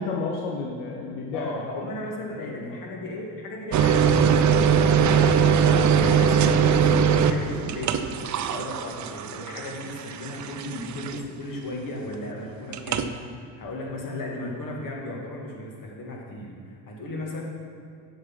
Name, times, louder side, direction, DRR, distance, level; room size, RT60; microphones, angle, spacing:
voice 1, 0.0-1.5 1.8-2.0 2.4-2.8, left 3 dB, 80° left, -1 dB, 1.1 m, -31 dB
voice 2, 1.3-8.0 8.5-17.4, left 1 dB, 45° left, -1 dB, 2.5 m, -36 dB
sound 1, 3.7-11.4 12.7-13.1, right 7 dB, 40° right, 0.7 m, -21 dB
7.8 x 7.2 x 5.8 m, 2.3 s
hypercardioid pair, 65°, 44 cm